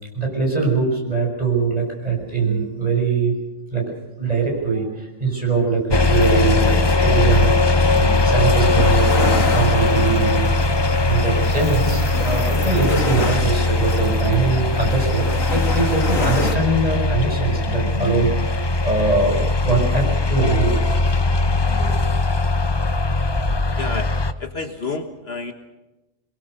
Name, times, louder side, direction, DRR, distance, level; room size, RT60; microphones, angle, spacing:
voice 1, 0.1-3.4 3.7-10.5 11.1-19.4 19.6-20.8 21.4-22.1, right 4 dB, 30° right, 0 dB, 6.8 m, -22 dB
sound 1, 5.9-24.3, left 2 dB, 25° left, 0.7 m, -20 dB
sound 2, 8.2-16.6, left 2 dB, 80° left, 3.0 m, -29 dB
voice 2, 23.8-24.1 24.4-25.5, left 4 dB, 50° left, 6 dB, 1.6 m, -29 dB
24.0 x 22.5 x 6.7 m, 1.0 s
omnidirectional pair, 1.4 m